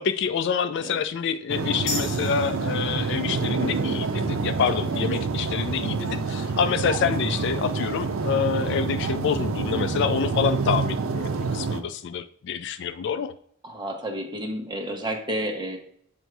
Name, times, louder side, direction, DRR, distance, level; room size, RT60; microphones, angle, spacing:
voice 1, 0.0-13.3, left 7 dB, 60° left, 13 dB, 0.3 m, -27 dB
sound 1, 1.5-11.8, right 4 dB, 85° right, 0.5 m, -27 dB
sound 2, 1.9-9.0, left 1 dB, 35° left, 2.5 m, -41 dB
voice 2, 13.6-15.8, right 1 dB, 20° right, 2 dB, 0.9 m, -31 dB
7.8 x 2.7 x 4.6 m, 0.65 s
head